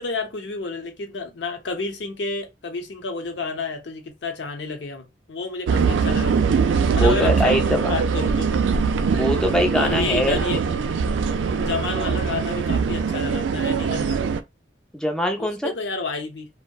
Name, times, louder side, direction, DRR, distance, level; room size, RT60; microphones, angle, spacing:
voice 1, 0.0-6.4 6.9-8.5 9.7-10.6 11.6-14.2 15.4-16.5, left 3 dB, 75° left, 0.7 m, -30 dB
sound 1, 5.7-14.4, right 5 dB, 90° right, 0.3 m, -22 dB
voice 2, 7.0-7.9 9.1-10.4 14.9-15.7, equal, 5° left, 0.4 m, -22 dB
2.6 x 2.1 x 2.2 m
head